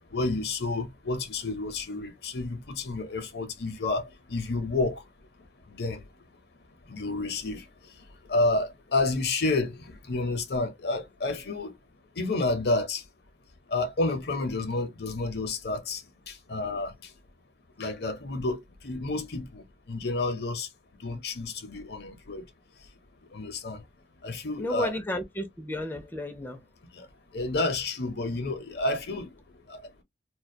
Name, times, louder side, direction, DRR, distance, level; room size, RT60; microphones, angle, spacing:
voice 1, 0.1-4.0 4.3-5.0 5.7-6.0 6.9-7.6 8.3-9.7 10.1-11.7 12.2-13.0 13.7-16.0 16.5-16.9 17.8-19.6 19.9-20.7 21.0-22.4 23.3-23.8 24.2-24.9 27.3-29.3, left 2 dB, 65° left, 0.6 m, -29 dB
voice 2, 24.6-26.6, left 1 dB, 10° left, 0.4 m, -32 dB
2.2 x 2.1 x 2.6 m
head